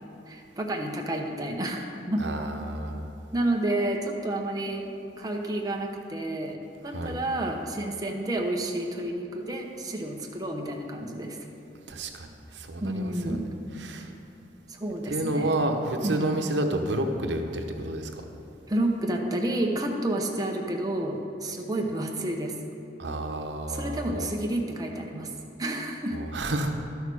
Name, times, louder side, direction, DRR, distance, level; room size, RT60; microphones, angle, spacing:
voice 1, 0.3-2.2 3.3-4.9 5.2-6.6 6.8-11.4 12.8-13.5 14.8-15.6 16.0-16.5 18.7-22.5 23.7-25.3 25.6-26.2, right 1 dB, 20° right, 1 dB, 0.8 m, -30 dB
voice 2, 2.2-3.1 6.9-7.2 11.9-13.4 13.8-14.1 15.1-18.2 23.0-24.2 26.1-26.7, right 1 dB, 85° right, 4 dB, 0.9 m, -30 dB
12.0 x 6.4 x 4.8 m, 2.7 s
head